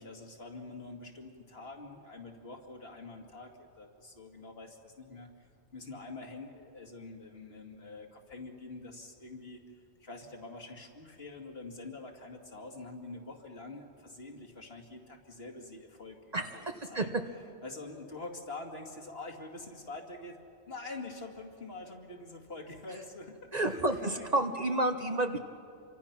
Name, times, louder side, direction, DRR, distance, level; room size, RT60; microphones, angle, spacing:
voice 1, 0.0-5.5 5.7-17.1 17.6-20.4 20.7-24.3, left 3 dB, 60° left, 2 dB, 2.4 m, -46 dB
voice 2, 16.3-17.0 23.5-25.4, right 2 dB, 40° right, 7 dB, 1.0 m, -30 dB
28.5 x 24.5 x 5.9 m, 2.6 s
omnidirectional pair, 1.1 m